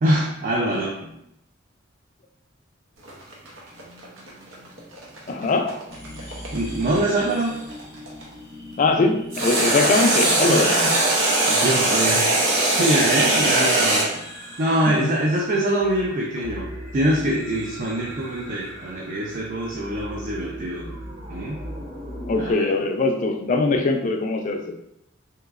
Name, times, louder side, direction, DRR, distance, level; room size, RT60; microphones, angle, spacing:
voice 1, 0.0-1.2 6.5-7.6 10.5-10.6 11.5-12.3 12.6-14.2 14.6-20.9 21.3-21.6 22.4-22.7, right 1 dB, 45° right, -2 dB, 0.4 m, -24 dB
sound 1, 3.0-8.2 9.3-14.1, right 2 dB, 75° right, 0.8 m, -21 dB
voice 2, 5.3-5.7 8.8-10.9 15.0-15.1 22.3-24.7, left 3 dB, 40° left, 4 dB, 0.4 m, -21 dB
sound 2, 5.9-22.5, equal, 20° right, 0.8 m, -39 dB
3.3 x 2.9 x 2.4 m, 0.80 s
head